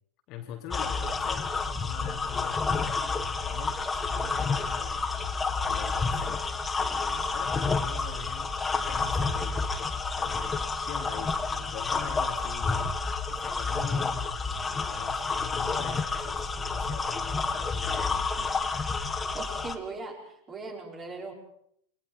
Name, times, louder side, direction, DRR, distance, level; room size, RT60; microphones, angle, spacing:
voice 1, 0.3-5.1 5.7-6.5 6.9-12.8 13.3-18.3, left 9 dB, 40° left, 4 dB, 2.7 m, -43 dB
sound 1, 0.7-19.8, left 4 dB, 15° left, 1.6 m, -30 dB
voice 2, 19.3-21.3, right 3 dB, 20° right, 1 dB, 5.4 m, -39 dB
29.0 x 22.5 x 4.8 m, 0.69 s
figure-of-eight pair, 90°, 0 cm